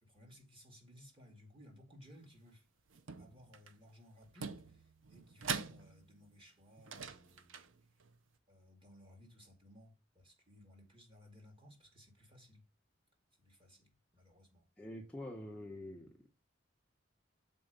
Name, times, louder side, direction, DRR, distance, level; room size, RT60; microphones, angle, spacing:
voice 1, 0.0-2.7 3.2-7.6 8.5-12.6 13.4-14.7, equal, 30° right, 2.3 m, -60 dB
sound 1, 2.9-3.7 4.2-6.3 6.8-8.2, right 6 dB, 80° right, 0.7 m, -44 dB
voice 2, 14.8-16.1, left 1 dB, 5° left, 0.9 m, -46 dB
6.9 x 4.5 x 5.3 m
head